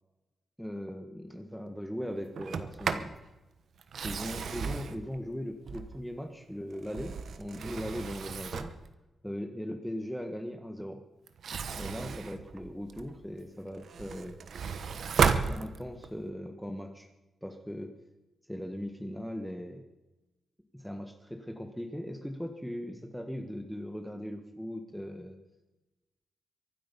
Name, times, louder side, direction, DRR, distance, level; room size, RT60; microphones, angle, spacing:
voice 1, 0.6-3.1 4.0-8.7 9.2-11.0 11.7-14.4 15.1-17.1 17.4-17.9 18.5-19.9 20.7-25.4, equal, ahead, 5 dB, 1.4 m, -39 dB
Sliding door, 2.4-3.2 3.8-6.2 6.7-8.9 11.3-13.2 13.7-16.2, right 6 dB, 70° right, 1.0 m, -34 dB
24.0 x 8.5 x 5.5 m, 1.0 s
cardioid pair, 90°, 0 cm